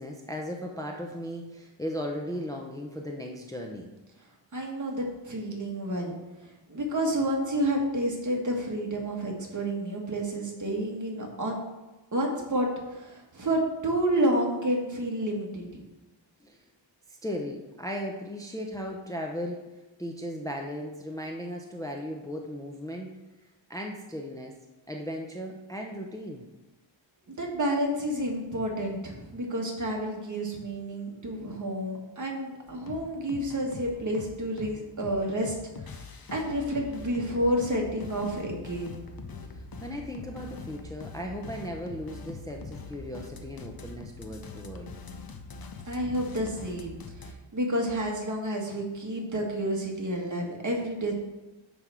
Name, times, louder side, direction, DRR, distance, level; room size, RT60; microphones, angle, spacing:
voice 1, 0.0-3.9 16.4-16.7 17.1-19.7 20.0-23.2 23.7-24.6 24.9-26.5 39.4-44.9, equal, 10° left, 1 dB, 0.6 m, -37 dB
voice 2, 4.5-6.2 6.7-11.6 12.1-15.8 27.3-35.5 35.8-39.0 45.8-51.1, right 1 dB, 40° right, -1 dB, 1.6 m, -30 dB
sound 1, 32.7-47.3, left 3 dB, 50° left, 0.8 m, -43 dB
9.5 x 3.5 x 6.1 m, 1.1 s
wide cardioid pair, 140°, 46 cm